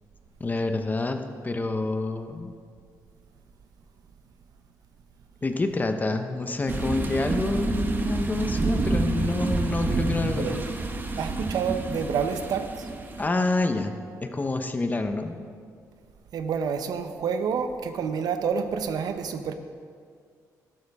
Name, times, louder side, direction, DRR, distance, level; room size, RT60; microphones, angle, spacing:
voice 1, 0.4-2.5 5.4-10.6 13.2-15.4, left 2 dB, 25° left, 7 dB, 0.9 m, -28 dB
sound 1, 6.7-13.3, right 3 dB, 30° right, 1.0 m, -28 dB
voice 2, 11.2-12.9 16.3-19.5, right 6 dB, 70° right, 8 dB, 0.8 m, -28 dB
12.5 x 12.0 x 3.6 m, 2.1 s
cardioid pair, 100°, 7 cm